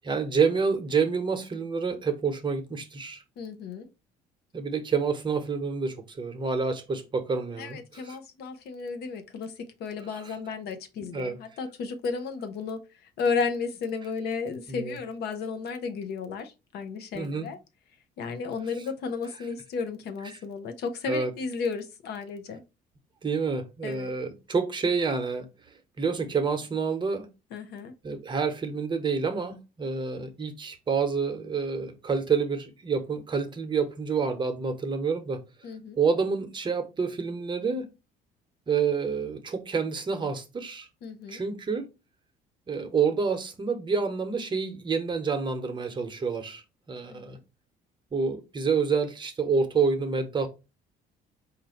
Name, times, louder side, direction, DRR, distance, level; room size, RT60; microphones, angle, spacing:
voice 1, 0.0-3.2 4.5-7.8 8.1-8.2 11.1-11.4 14.7-15.0 17.1-17.5 21.1-21.3 23.2-25.5 26.0-27.3 28.0-35.4 36.0-37.9 38.7-40.9 41.3-41.9 42.7-47.4 48.1-50.5, right 5 dB, 25° right, 0.9 m, -28 dB
voice 2, 3.4-3.9 7.6-17.6 18.2-22.6 23.8-24.1 27.5-27.9 35.6-36.0 41.0-41.4 47.1-47.4, left 5 dB, 75° left, 0.8 m, -33 dB
4.3 x 2.6 x 4.2 m
cardioid pair, 110°, 17 cm